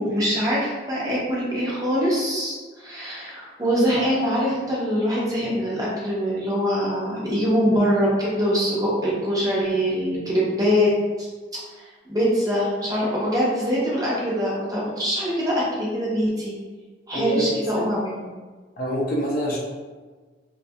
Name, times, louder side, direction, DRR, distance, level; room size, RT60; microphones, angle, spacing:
voice 1, 0.0-10.9 12.1-16.5 17.1-18.2, equal, 20° right, -6 dB, 0.5 m, -23 dB
voice 2, 17.1-17.8 18.8-19.6, equal, 50° left, -3 dB, 0.4 m, -26 dB
2.5 x 2.3 x 2.6 m, 1.4 s
head